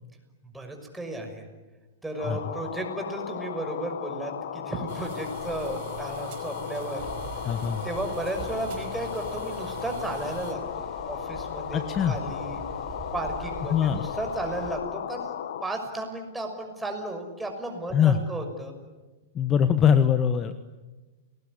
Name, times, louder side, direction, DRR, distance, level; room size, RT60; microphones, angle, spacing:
voice 1, 0.5-1.5 2.0-7.0 7.8-12.6 13.1-15.3 15.6-18.7, right 1 dB, 5° right, 3 dB, 6.2 m, -34 dB
sound 1, 2.2-15.6, left 9 dB, 75° left, 1.8 m, -36 dB
sound 2, 4.9-10.5, right 9 dB, 55° right, 5.1 m, -44 dB
sound 3, 7.0-14.8, right 5 dB, 30° right, 4.9 m, -44 dB
voice 2, 7.4-7.8 11.7-12.2 13.7-14.0 17.9-18.2 19.3-20.5, left 8 dB, 30° left, 11 dB, 1.3 m, -22 dB
29.5 x 20.5 x 9.9 m, 1.2 s
hypercardioid pair, 130°, 0 cm